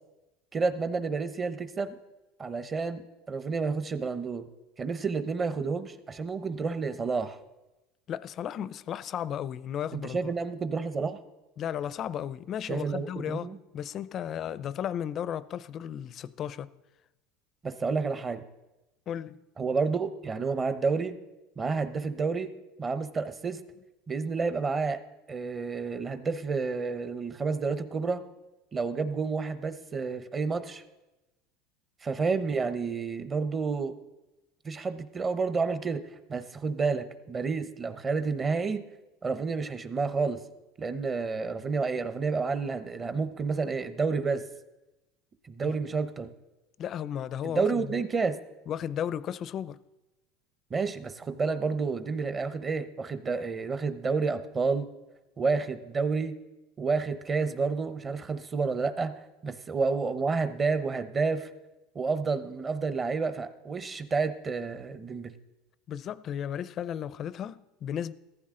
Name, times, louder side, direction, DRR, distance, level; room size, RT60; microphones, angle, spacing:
voice 1, 0.5-1.9 2.4-4.5 4.8-7.4 9.9-11.2 12.7-13.6 17.6-18.4 19.6-21.1 21.6-22.5 22.8-23.6 24.1-25.0 25.3-28.2 28.7-30.8 32.0-33.9 34.6-36.0 36.3-38.8 39.2-40.4 40.8-44.4 45.5-46.3 47.4-48.4 50.7-54.9 55.4-56.4 56.8-59.1 59.4-61.5 61.9-65.3, right 4 dB, 25° right, 0.9 m, -30 dB
voice 2, 8.1-10.3 11.6-16.7 19.1-19.4 45.6-45.7 46.8-48.0 48.7-49.8 65.9-68.1, left 9 dB, 40° left, 0.5 m, -34 dB
15.0 x 14.5 x 3.8 m
supercardioid pair, 130°, 0 cm